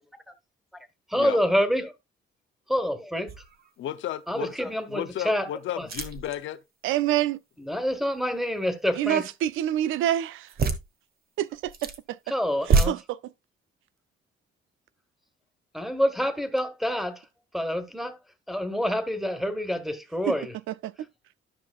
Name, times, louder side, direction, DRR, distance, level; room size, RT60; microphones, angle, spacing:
voice 1, 1.1-1.9 2.7-3.3 4.3-5.5 5.8-5.9 7.6-9.2 12.3-12.9 15.7-17.2 17.5-18.2 18.5-20.5, equal, ahead, 1.6 m, -27 dB
sound 1, 3.3-3.7 4.2-4.3 5.8-6.4 10.5-10.9 11.5-12.0 12.5-12.9, right 4 dB, 50° right, 1.3 m, -26 dB
voice 2, 3.8-4.5 4.9-6.6, left 12 dB, 75° left, 0.7 m, -33 dB
voice 3, 6.8-7.4 9.0-10.5 11.4-12.2 12.7-13.2 20.3-20.4 20.7-20.9, right 12 dB, 85° right, 0.5 m, -27 dB
12.5 x 5.6 x 2.4 m
cardioid pair, 90°, 20 cm